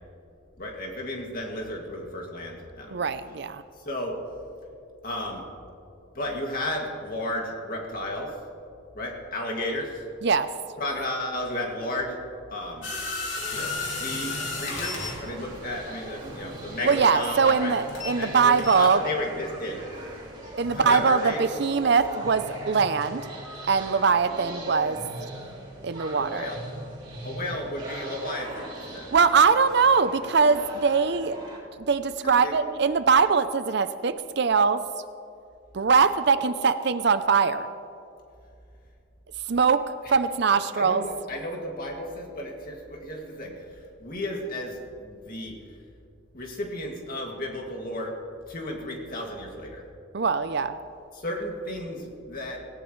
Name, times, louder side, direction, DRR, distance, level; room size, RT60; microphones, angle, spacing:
voice 1, 0.6-3.0 3.8-4.2 5.0-5.5 6.1-8.3 8.9-10.0 10.8-12.2 12.5-12.9 13.5-17.7 18.2-20.2 20.7-21.6 26.2-26.6 27.2-29.1 32.2-32.7 40.8-45.6 46.3-48.1 48.5-49.8 51.1-52.6, left 1 dB, 45° left, 0 dB, 2.3 m, -33 dB
voice 2, 2.9-3.6 10.2-10.5 16.8-19.0 20.5-23.3 23.7-25.0 25.8-26.5 29.1-31.4 31.8-34.8 35.7-37.7 39.5-41.0 50.1-50.7, right 5 dB, 55° right, 12 dB, 0.5 m, -22 dB
sound 1, 12.8-18.3 18.6-18.9, left 3 dB, 70° left, 3.0 m, -33 dB
sound 2, 13.4-31.6, right 1 dB, 30° right, 3.5 m, -40 dB
18.0 x 17.5 x 3.2 m, 2.5 s
head